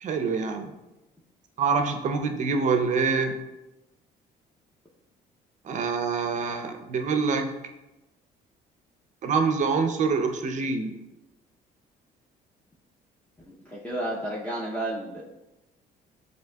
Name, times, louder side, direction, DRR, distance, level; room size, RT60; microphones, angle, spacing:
voice 1, 0.0-0.7 1.6-3.4 5.6-7.5 9.2-10.9, right 5 dB, 45° right, 6 dB, 0.5 m, -25 dB
voice 2, 13.7-15.2, right 1 dB, 10° left, -5 dB, 0.6 m, -31 dB
7.2 x 2.8 x 2.2 m, 0.99 s
cardioid pair, 110°, 17 cm